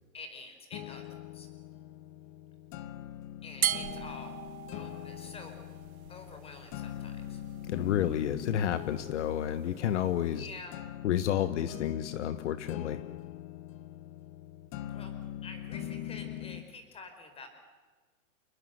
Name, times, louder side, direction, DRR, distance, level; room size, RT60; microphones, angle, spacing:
voice 1, 0.1-1.0 1.3-1.5 3.4-4.4 4.7-5.6 6.1-7.4 10.3-10.8 14.9-15.1 15.4-17.5, left 3 dB, 15° left, 7 dB, 4.5 m, -48 dB
sound 1, 0.7-16.7, left 11 dB, 30° left, 1.2 m, -42 dB
sound 2, 3.6-10.6, right 10 dB, 85° right, 1.6 m, -40 dB
voice 2, 7.7-10.5 11.0-13.0, left 10 dB, 55° left, 13 dB, 1.4 m, -30 dB
29.0 x 20.5 x 8.1 m, 1.4 s
hypercardioid pair, 155°, 42 cm